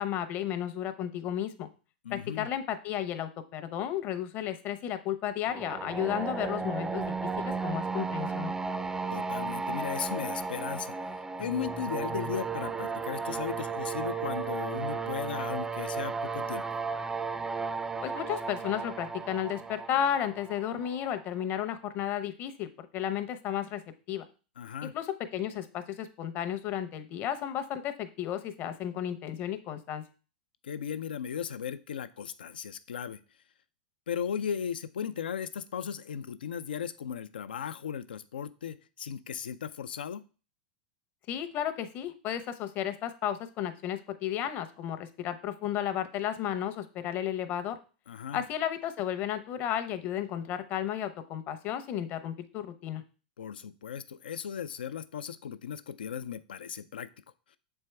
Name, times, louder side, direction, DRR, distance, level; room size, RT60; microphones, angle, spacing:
voice 1, 0.0-1.7 2.1-8.5 18.0-23.8 24.1-24.3 24.9-30.0 41.3-47.8 48.3-53.0, left 10 dB, 40° left, 10 dB, 0.8 m, -33 dB
voice 2, 2.0-2.5 9.1-16.7 24.6-24.9 30.6-33.2 34.1-40.2 48.1-48.4 53.4-57.1, left 8 dB, 90° left, 13 dB, 0.5 m, -36 dB
sound 1, 5.5-21.3, right 4 dB, 10° right, 0.4 m, -34 dB
6.9 x 4.5 x 3.3 m, 0.35 s
hypercardioid pair, 120°, 5 cm